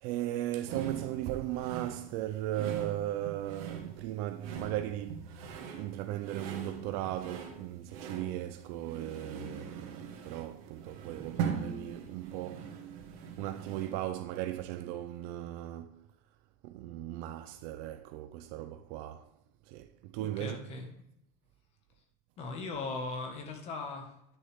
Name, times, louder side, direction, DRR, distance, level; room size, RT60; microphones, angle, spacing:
voice 1, 0.0-13.1 13.4-16.1 16.6-19.3 19.7-20.6, right 13 dB, 60° right, 0.5 m, -37 dB
sound 1, 0.6-14.1, right 7 dB, 85° right, 2.1 m, -42 dB
voice 2, 20.4-21.0 22.4-24.4, left 3 dB, 35° left, 1.8 m, -39 dB
10.5 x 6.5 x 3.6 m
cardioid pair, 165°, 17 cm